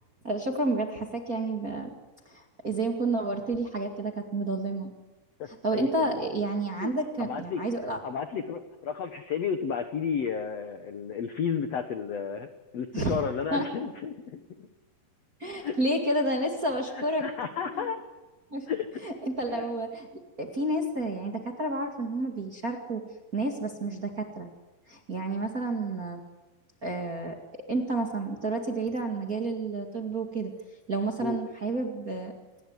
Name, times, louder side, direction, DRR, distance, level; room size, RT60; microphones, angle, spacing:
voice 1, 0.2-1.9 2.3-4.9 5.6-8.0 12.9-13.2 13.5-13.9 15.4-17.2 17.7-17.9 18.5-18.7 19.0-23.0 23.3-24.5 24.9-26.2 26.8-27.4 27.7-30.5 30.9-32.3, right 2 dB, 30° right, 3 dB, 1.7 m, -30 dB
voice 2, 5.4-6.1 6.8-6.9 7.2-7.6 8.0-12.5 12.7-14.7 15.6-15.8 16.9-18.0 18.7-19.0 19.5-19.7 31.2-31.4, left 7 dB, 65° left, 8 dB, 1.7 m, -32 dB
28.0 x 20.0 x 9.7 m, 1.2 s
omnidirectional pair, 4.8 m